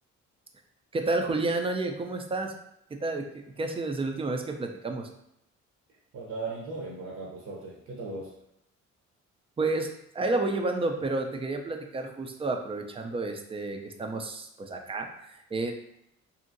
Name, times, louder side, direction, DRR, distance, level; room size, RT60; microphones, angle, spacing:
voice 1, 0.9-2.5 2.9-3.2 3.6-5.1 9.6-15.7, right 2 dB, 20° right, 4 dB, 0.4 m, -30 dB
voice 2, 6.1-8.3, right 3 dB, 55° right, -3 dB, 0.7 m, -37 dB
2.8 x 2.6 x 2.5 m, 0.76 s
cardioid pair, 90°, 30 cm